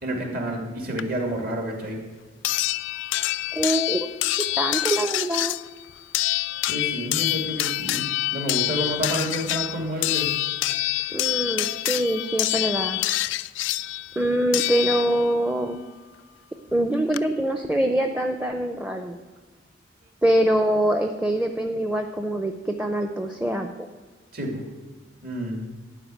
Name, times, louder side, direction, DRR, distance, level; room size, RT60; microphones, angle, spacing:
voice 1, 0.0-2.0 6.7-10.3 24.3-24.6 25.2-25.6, equal, 50° right, 0 dB, 2.5 m, -29 dB
sound 1, 1.0-1.1 2.4-15.4 16.7-16.8 17.1-17.2, left 16 dB, 70° left, 0.3 m, -26 dB
voice 2, 3.5-4.1 4.6-5.6 11.1-13.0 14.2-15.8 16.7-19.2 20.2-23.9, right 1 dB, 5° right, 5 dB, 0.6 m, -24 dB
12.5 x 5.3 x 9.0 m, 1.3 s
head